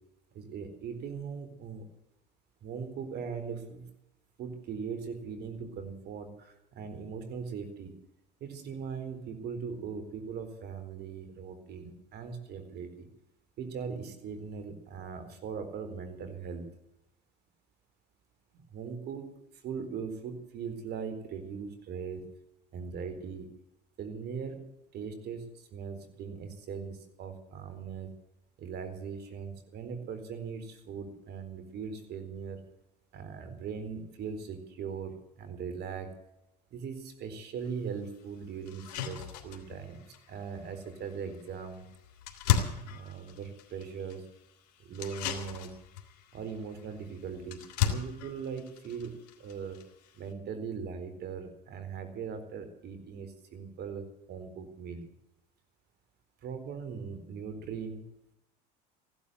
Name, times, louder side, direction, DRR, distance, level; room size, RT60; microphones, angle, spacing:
voice 1, 0.3-1.8 2.6-3.9 4.4-7.9 8.4-13.1 13.6-16.6 18.7-19.4 19.6-22.3 22.7-23.5 24.0-24.6 24.9-28.1 28.6-32.6 33.1-36.1 36.7-40.0 40.3-41.9 42.8-44.3 44.8-45.8 46.3-49.8 50.1-55.0 56.4-58.0, right 6 dB, 50° right, 10 dB, 4.1 m, -40 dB
sound 1, 37.6-37.7 38.2-38.3 38.7-50.3, left 9 dB, 75° left, 2.8 m, -37 dB
15.5 x 11.5 x 7.9 m, 0.86 s
supercardioid pair, 90°, 21 cm